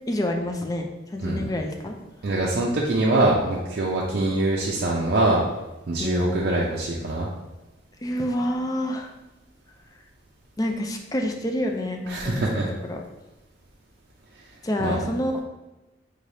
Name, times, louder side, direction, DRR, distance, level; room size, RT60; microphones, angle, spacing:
voice 1, 0.1-2.0 6.0-6.4 8.0-9.1 10.6-13.0 14.6-15.4, left 1 dB, 20° left, 3 dB, 0.4 m, -28 dB
voice 2, 2.2-5.4 5.9-7.3 12.1-12.7 14.8-15.0, right 2 dB, 55° right, -4 dB, 0.5 m, -23 dB
3.7 x 3.3 x 2.7 m, 1.0 s
head